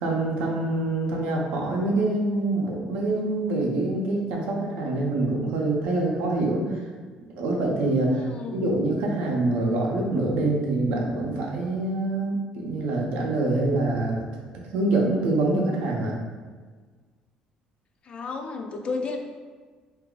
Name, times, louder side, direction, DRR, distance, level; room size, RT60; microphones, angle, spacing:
voice 1, 0.0-6.8 7.4-8.2 8.5-14.2 14.7-16.1, right 2 dB, 85° right, -1 dB, 0.6 m, -25 dB
voice 2, 8.1-8.7 18.1-19.2, left 4 dB, 40° left, 4 dB, 0.4 m, -32 dB
2.6 x 2.3 x 3.7 m, 1.5 s
cardioid pair, 95°, 3 cm